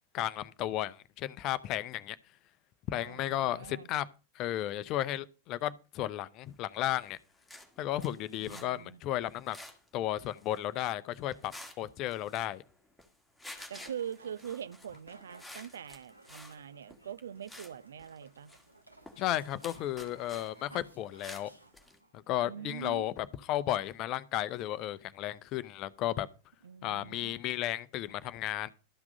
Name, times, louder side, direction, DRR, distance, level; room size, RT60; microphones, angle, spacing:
voice 1, 0.1-2.2 2.9-4.1 4.3-7.2 7.8-9.6 9.9-12.6 19.2-21.5 22.1-26.3 26.8-28.7, left 13 dB, 40° left, 0.7 m, -34 dB
voice 2, 2.9-3.9 8.4-9.0 13.7-18.5 22.4-23.1 26.6-27.4, right 9 dB, 65° right, 0.6 m, -43 dB
sound 1, 6.9-7.1 7.3-8.7 9.2-9.9 10.1-10.6 11.1-11.8 12.1-13.1 13.4-16.6 16.9-17.1 17.4-17.7 18.0-20.5 20.8-22.0, left 1 dB, ahead, 2.3 m, -51 dB
sound 2, 13.5-22.1, right 2 dB, 85° right, 1.5 m, -58 dB
13.0 x 6.0 x 6.4 m
figure-of-eight pair, 90°, 0 cm